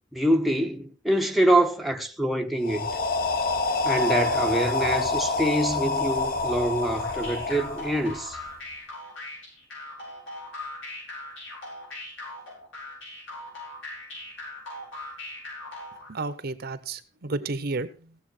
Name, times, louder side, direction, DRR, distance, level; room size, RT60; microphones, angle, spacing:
voice 1, 0.1-2.9 3.8-8.4, right 1 dB, ahead, 0.7 m, -25 dB
sound 1, 2.6-8.5, left 3 dB, 50° left, 1.0 m, -27 dB
sound 2, 6.9-16.1, left 1 dB, 80° left, 7.8 m, -39 dB
voice 2, 16.1-18.2, right 3 dB, 55° right, 0.8 m, -32 dB
17.0 x 7.0 x 4.4 m
head